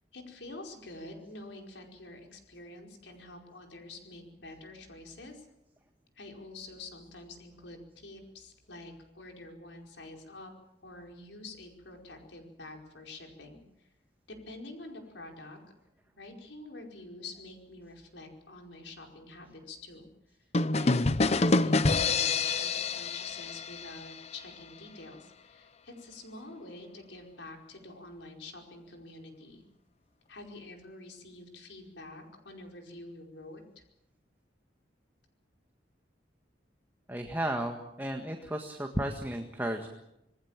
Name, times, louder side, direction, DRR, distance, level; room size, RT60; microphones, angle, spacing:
voice 1, 0.1-5.5 6.2-10.5 10.8-13.9 14.3-15.6 16.1-20.1 20.7-29.6 30.3-33.8, left 2 dB, 85° left, 2 dB, 4.9 m, -47 dB
sound 1, 20.5-24.3, left 3 dB, 35° left, 0.8 m, -27 dB
voice 2, 37.1-39.9, right 1 dB, 10° right, 3 dB, 1.7 m, -33 dB
26.5 x 19.5 x 7.4 m, 0.86 s
head